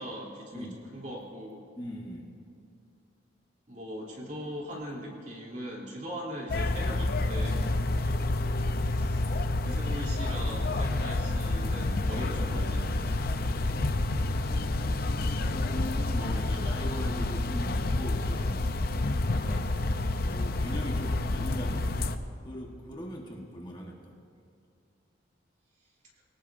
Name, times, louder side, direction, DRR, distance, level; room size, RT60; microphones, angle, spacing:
voice 1, 0.0-1.6 3.7-7.7 8.8-12.9, equal, 40° right, -3 dB, 3.3 m, -40 dB
voice 2, 1.8-2.3 7.5-7.8 15.5-19.7 20.2-22.1 22.4-24.1, equal, 25° left, -1 dB, 1.3 m, -40 dB
sound 1, 6.5-22.2, left 2 dB, 50° left, 0.6 m, -29 dB
24.0 x 18.5 x 2.7 m, 2.5 s
head